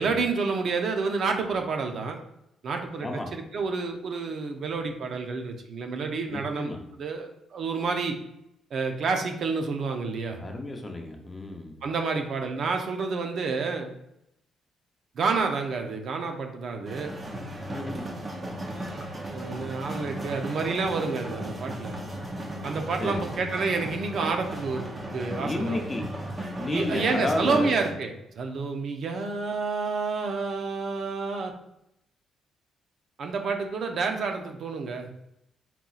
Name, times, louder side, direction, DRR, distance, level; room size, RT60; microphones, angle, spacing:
voice 1, 0.0-2.2 2.6-6.7 7.0-8.2 8.7-10.4 11.8-13.9 15.2-17.1 19.3-22.0 22.6-25.8 26.7-31.5 33.2-35.1, right 4 dB, 60° right, 4 dB, 0.7 m, -29 dB
voice 2, 3.0-3.3 6.3-6.8 10.4-11.8 17.7-18.1 23.0-23.2 25.4-26.1 26.6-27.7, left 2 dB, 20° left, 2 dB, 0.8 m, -32 dB
sound 1, 16.8-27.9, right 1 dB, 30° right, 0.8 m, -36 dB
4.2 x 4.0 x 2.4 m, 0.81 s
cardioid pair, 90°, 0 cm